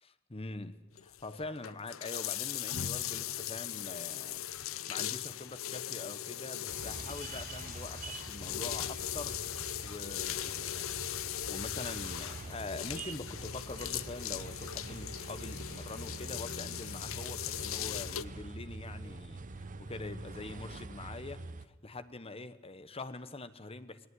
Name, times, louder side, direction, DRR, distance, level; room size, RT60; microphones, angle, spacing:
voice 1, 0.0-4.4 4.7-10.9 11.3-24.1, left 2 dB, 30° left, 1.1 m, -44 dB
sound 1, 1.0-18.2, left 12 dB, 80° left, 0.7 m, -39 dB
sound 2, 6.7-21.7, right 3 dB, 40° right, 0.8 m, -45 dB
20.0 x 19.5 x 9.8 m
head